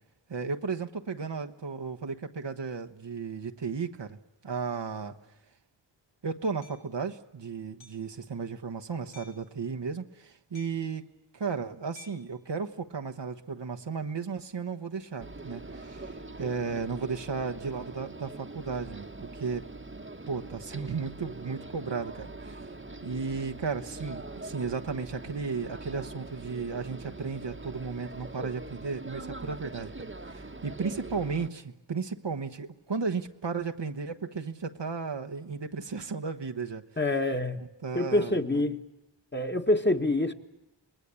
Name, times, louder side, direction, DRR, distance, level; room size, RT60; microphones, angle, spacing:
voice 1, 0.3-5.2 6.2-11.0 11.3-19.7 20.3-22.6 23.0-36.8 37.8-38.6, right 5 dB, 65° right, 5 dB, 1.3 m, -34 dB
Hammer, 6.6-6.8 7.8-8.1 9.1-9.5 10.6-11.0 12.0-12.3, left 5 dB, 80° left, 3.3 m, -53 dB
sound 1, 15.2-31.5, right 2 dB, 25° right, 1.4 m, -43 dB
voice 2, 37.0-37.6 37.9-38.8 39.3-40.3, left 1 dB, 25° left, 5 dB, 1.9 m, -26 dB
26.0 x 20.5 x 8.4 m, 0.96 s
wide cardioid pair, 45°, 45 cm